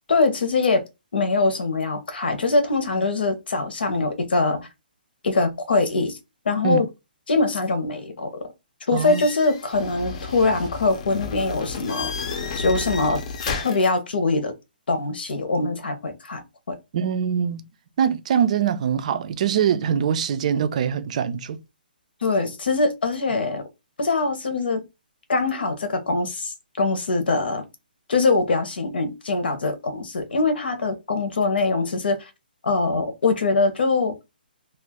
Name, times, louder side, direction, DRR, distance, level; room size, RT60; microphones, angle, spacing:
voice 1, 0.1-0.8 1.1-4.7 5.2-6.2 6.4-6.8 7.3-8.3 8.9-12.1 12.5-13.2 13.6-14.5 14.9-16.4 16.7-16.8 22.2-23.6 24.0-24.8 25.3-27.7 28.1-32.3 32.6-34.1, left 3 dB, 80° left, 0.9 m, -23 dB
voice 2, 8.9-9.2 16.9-17.6 18.0-21.6, right 8 dB, 45° right, 0.4 m, -23 dB
sound 1, 9.0-13.9, left 4 dB, 40° left, 0.6 m, -32 dB
2.5 x 2.4 x 3.5 m
hypercardioid pair, 160°, 5 cm